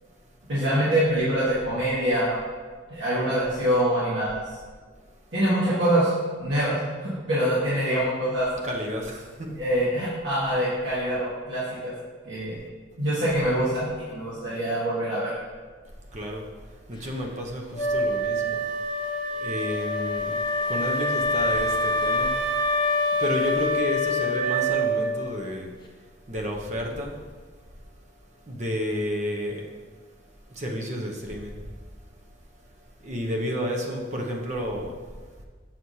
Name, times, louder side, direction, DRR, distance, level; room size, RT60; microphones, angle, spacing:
voice 1, 0.5-2.4 2.9-4.4 5.3-6.1 6.4-8.5 9.6-11.9 12.2-12.6 13.0-15.3, right 1 dB, 80° right, -10 dB, 1.5 m, -24 dB
voice 2, 8.6-9.5 16.1-18.6 19.3-22.4 23.2-25.7 26.3-27.2 28.5-29.7 30.5-31.7 33.0-35.2, equal, 40° right, 0 dB, 0.7 m, -31 dB
Wind instrument woodwind instrument, 17.8-25.3, left 1 dB, 25° left, 0.7 m, -25 dB
6.2 x 5.8 x 2.7 m, 1.5 s
head